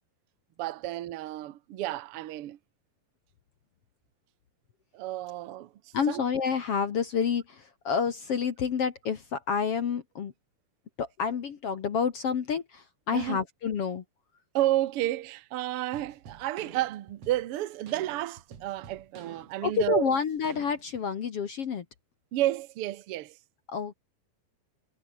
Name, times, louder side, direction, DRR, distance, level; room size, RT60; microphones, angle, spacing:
voice 1, 0.6-2.6 4.9-5.7 6.1-6.2 13.1-13.4 14.5-20.1 22.3-23.4, right 14 dB, 75° right, 1.3 m, -31 dB
voice 2, 5.9-10.3 11.0-14.0 19.6-21.9 23.7-23.9, left 6 dB, 50° left, 2.1 m, -29 dB
sound 1, 15.9-21.1, right 7 dB, 45° right, 3.3 m, -50 dB
omnidirectional pair, 4.1 m